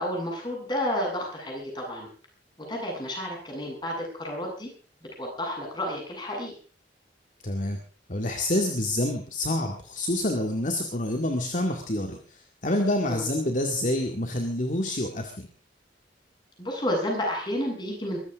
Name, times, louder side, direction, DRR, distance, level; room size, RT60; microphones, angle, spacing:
voice 1, 0.0-2.1 2.6-4.7 5.2-6.5 13.1-13.2 16.6-18.2, left 1 dB, 25° left, 0 dB, 7.8 m, -31 dB
voice 2, 7.4-7.8 8.1-15.5, left 1 dB, 45° left, 4 dB, 2.1 m, -27 dB
23.0 x 14.5 x 3.6 m, 0.38 s
head